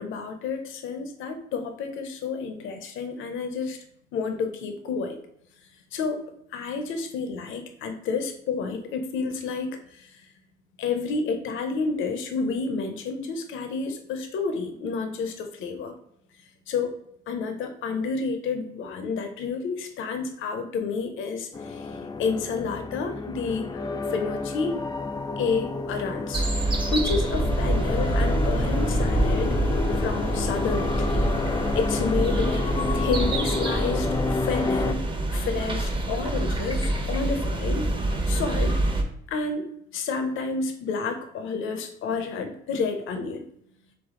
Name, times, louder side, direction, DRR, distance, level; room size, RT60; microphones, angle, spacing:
voice 1, 0.0-3.8 4.1-5.2 5.9-6.2 6.5-10.2 10.8-15.9 16.7-16.9 17.3-24.8 25.4-29.6 30.0-31.3 31.7-32.6 32.9-35.0 35.3-37.9 38.3-38.8 39.3-39.7 39.9-43.5, left 4 dB, 80° left, 6 dB, 0.6 m, -30 dB
sound 1, 21.5-34.9, left 3 dB, 20° left, 0.3 m, -30 dB
sound 2, 26.3-39.0, right 1 dB, 25° right, 0.7 m, -26 dB
3.6 x 3.4 x 3.6 m, 0.74 s
cardioid pair, 90°, 20 cm